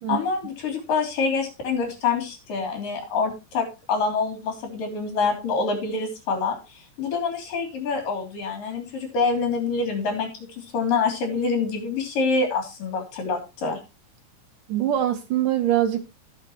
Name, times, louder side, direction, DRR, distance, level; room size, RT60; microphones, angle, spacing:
voice 1, 0.1-10.3 10.6-13.8, left 4 dB, 65° left, 4.9 m, -26 dB
voice 2, 14.7-16.1, right 11 dB, 65° right, 2.8 m, -23 dB
19.5 x 6.8 x 3.1 m
omnidirectional pair, 4.3 m